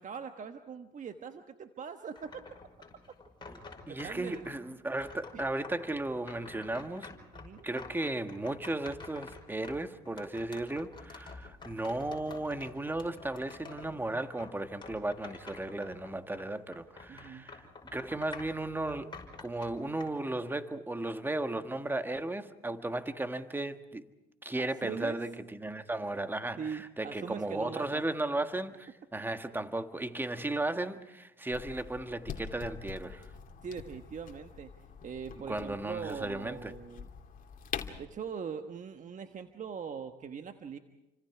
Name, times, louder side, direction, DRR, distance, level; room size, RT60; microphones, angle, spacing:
voice 1, 0.0-2.4 3.9-4.5 7.3-7.7 17.1-17.5 24.6-25.2 26.6-28.1 33.6-34.7 35.0-37.1 38.0-40.8, right 6 dB, 40° right, 1.3 m, -41 dB
sound 1, 2.2-4.6 5.0-16.5 16.7-20.1, left 4 dB, 20° left, 5.7 m, -49 dB
voice 2, 3.9-7.2 7.6-17.7 17.9-24.1 24.4-33.3 35.5-36.7, right 2 dB, 10° right, 1.5 m, -35 dB
sound 2, 31.5-38.0, left 7 dB, 40° left, 2.6 m, -44 dB
29.5 x 25.5 x 4.9 m
supercardioid pair, 75°, 20 cm